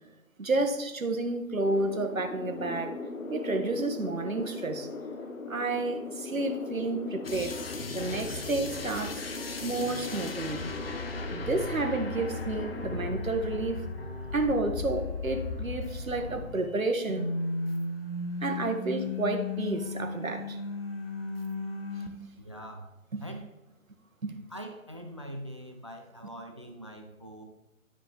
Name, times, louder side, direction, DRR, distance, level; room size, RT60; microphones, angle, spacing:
voice 1, 0.4-3.0 3.3-4.9 5.5-7.6 7.9-9.2 9.6-10.7 11.3-13.8 14.3-17.3 18.4-20.6 23.1-23.2 24.2-24.4, right 2 dB, 75° right, 6 dB, 1.4 m, -30 dB
sound 1, 1.6-13.2, left 3 dB, 80° left, 1.0 m, -40 dB
sound 2, 7.2-16.8 17.1-22.1, left 3 dB, 45° left, 0.9 m, -36 dB
voice 2, 22.3-22.9 23.2-23.4 24.5-27.4, equal, 25° right, 5 dB, 0.5 m, -43 dB
12.5 x 5.0 x 3.5 m, 1.0 s
figure-of-eight pair, 145°, 41 cm